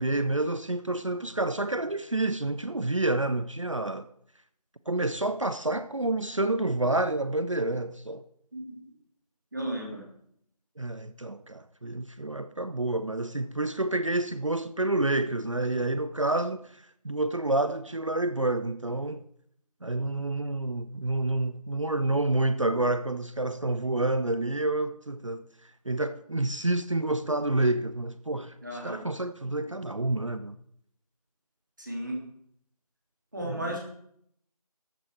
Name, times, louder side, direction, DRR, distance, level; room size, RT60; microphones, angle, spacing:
voice 1, 0.0-4.1 4.9-8.2 10.8-19.2 19.8-28.6 28.8-30.6 33.4-33.8, right 2 dB, 50° right, 0.6 m, -29 dB
voice 2, 9.5-10.0 28.6-29.1 31.8-32.2 33.3-33.8, right 1 dB, 30° right, 2.9 m, -34 dB
14.0 x 9.1 x 4.6 m
figure-of-eight pair, 180°, 20 cm